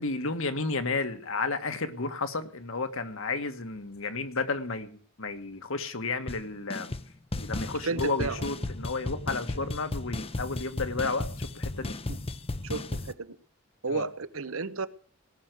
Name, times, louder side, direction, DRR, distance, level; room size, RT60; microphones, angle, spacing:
voice 1, 0.0-6.9 7.4-11.9 13.8-14.1, left 3 dB, 70° left, 7 dB, 1.7 m, -32 dB
sound 1, 6.3-6.4 6.7-7.1 7.3-13.1, left 2 dB, 30° left, 0.7 m, -35 dB
voice 2, 7.8-8.4 12.6-13.3 13.8-14.9, right 4 dB, 80° right, 13 dB, 1.0 m, -32 dB
18.5 x 6.5 x 9.4 m, 0.43 s
head